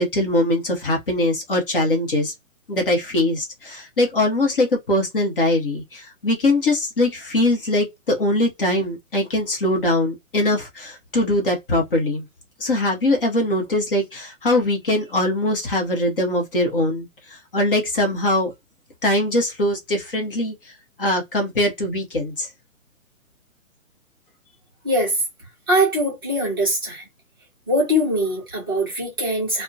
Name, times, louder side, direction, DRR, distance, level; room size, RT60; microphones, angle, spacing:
voice 1, 0.0-2.3 2.7-12.2 12.6-17.1 17.5-18.5 19.0-20.5 21.0-22.5, left 1 dB, 40° left, 0.8 m, -21 dB
voice 2, 24.8-25.2 25.7-27.1 27.7-29.6, equal, 15° right, 0.7 m, -22 dB
2.4 x 2.1 x 2.6 m
hypercardioid pair, 165°, 42 cm